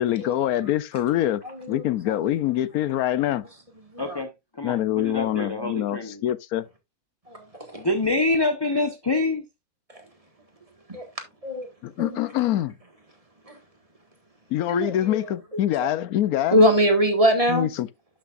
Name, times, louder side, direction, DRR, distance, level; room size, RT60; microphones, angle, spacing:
voice 1, 0.0-1.4 1.7-3.4 4.6-6.6 11.8-12.8 14.5-16.6 17.5-17.9, left 12 dB, 80° left, 1.1 m, -25 dB
voice 2, 4.0-6.2 7.7-9.4, left 2 dB, 20° left, 0.8 m, -26 dB
voice 3, 7.3-7.8 10.9-11.1 11.4-11.7 12.0-12.1 13.5-13.6 14.7-15.2 15.8-15.9 16.5-17.7, equal, 25° right, 1.8 m, -22 dB
11.0 x 6.8 x 2.5 m
omnidirectional pair, 1.6 m